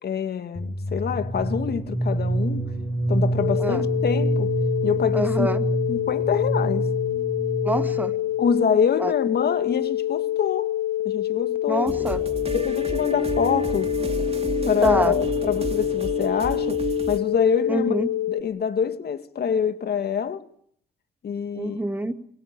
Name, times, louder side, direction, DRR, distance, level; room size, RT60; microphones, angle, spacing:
voice 1, 0.0-2.7 3.1-4.5 4.8-5.5 5.9-6.9 8.4-10.8 11.0-12.1 12.5-13.9 14.7-17.9 18.3-20.4 21.2-21.8, left 7 dB, 55° left, 2.1 m, -26 dB
sound 1, 0.5-8.2, right 2 dB, 10° left, 4.3 m, -27 dB
sound 2, 3.4-18.4, left 13 dB, 75° left, 2.4 m, -26 dB
voice 2, 5.1-5.7 7.6-8.2 9.0-9.1 11.7-12.2 14.8-15.1 17.7-18.1 21.5-22.1, right 1 dB, 10° right, 2.3 m, -26 dB
sound 3, 11.9-17.2, right 5 dB, 30° right, 2.7 m, -31 dB
25.5 x 22.5 x 8.9 m
cardioid pair, 90°, 20 cm